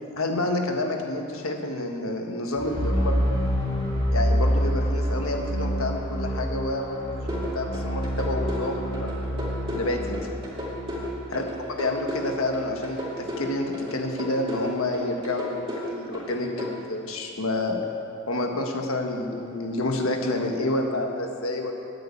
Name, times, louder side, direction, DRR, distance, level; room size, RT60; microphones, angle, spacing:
voice 1, 0.1-3.2 4.1-9.3 9.7-10.4 11.3-11.4 11.8-17.8 18.3-21.7, left 2 dB, 70° left, 3 dB, 1.4 m, -29 dB
sound 1, 2.5-12.6, equal, 25° left, 2.7 m, -27 dB
sound 2, 7.3-16.7, left 1 dB, 25° right, 2.3 m, -33 dB
10.0 x 8.6 x 8.4 m, 2.5 s
head